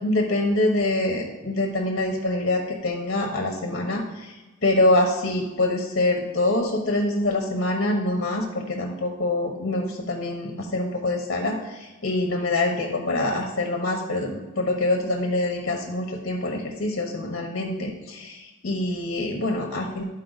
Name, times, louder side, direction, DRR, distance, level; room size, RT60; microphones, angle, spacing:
voice 1, 0.0-4.4 4.6-20.0, left 2 dB, 50° left, 1 dB, 1.0 m, -25 dB
11.5 x 4.3 x 4.0 m, 1.1 s
head